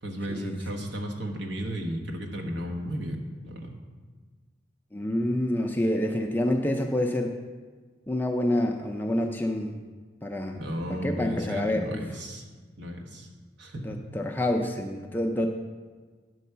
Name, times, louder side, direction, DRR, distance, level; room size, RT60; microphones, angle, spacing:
voice 1, 0.0-3.8 10.5-12.5 12.8-13.3 13.6-13.9, equal, 70° right, 1 dB, 1.2 m, -34 dB
voice 2, 4.9-7.4 8.1-9.8 10.2-10.6 10.9-12.1 13.8-15.7, left 1 dB, 10° left, 3 dB, 0.4 m, -27 dB
9.3 x 4.7 x 6.7 m, 1.5 s
head